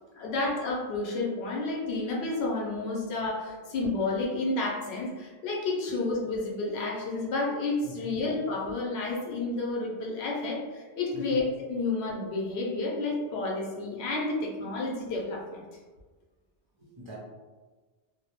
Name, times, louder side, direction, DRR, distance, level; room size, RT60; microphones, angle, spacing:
voice 1, 0.1-15.6, left 3 dB, 75° left, -2 dB, 0.8 m, -30 dB
voice 2, 7.8-8.2 11.1-11.5 16.8-17.2, left 2 dB, 50° right, -5 dB, 0.3 m, -44 dB
2.2 x 2.1 x 2.8 m, 1.3 s
omnidirectional pair, 1.1 m